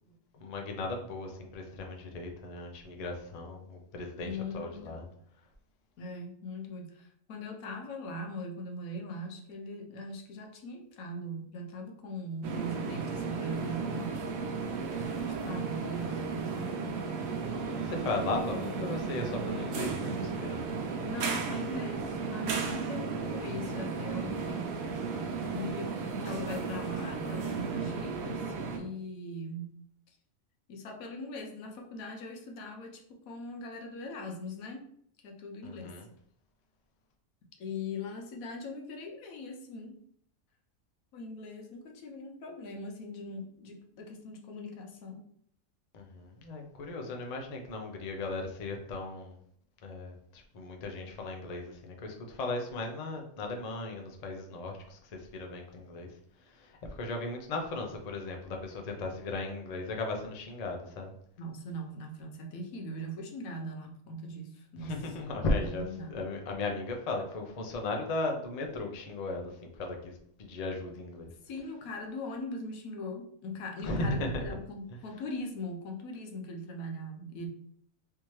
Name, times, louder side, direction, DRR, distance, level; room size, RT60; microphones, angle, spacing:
voice 1, 0.4-5.0 15.8-15.9 17.7-20.6 35.6-36.0 45.9-49.4 49.8-56.1 56.6-61.1 64.8-69.5 69.8-70.1 70.4-71.3 73.8-74.5, left 2 dB, 50° left, 2 dB, 0.4 m, -36 dB
voice 2, 4.2-5.2 6.0-14.2 15.2-17.0 21.0-24.7 25.5-28.4 28.8-29.7 30.1-30.2 30.7-34.8 35.2-35.9 37.6-40.0 41.1-45.2 61.4-65.2 65.6-66.2 71.5-77.5, left 1 dB, 85° left, 3 dB, 1.2 m, -40 dB
sound 1, 12.4-28.8, right 5 dB, 80° right, 1.1 m, -34 dB
3.5 x 2.8 x 3.0 m, 0.66 s
omnidirectional pair, 1.4 m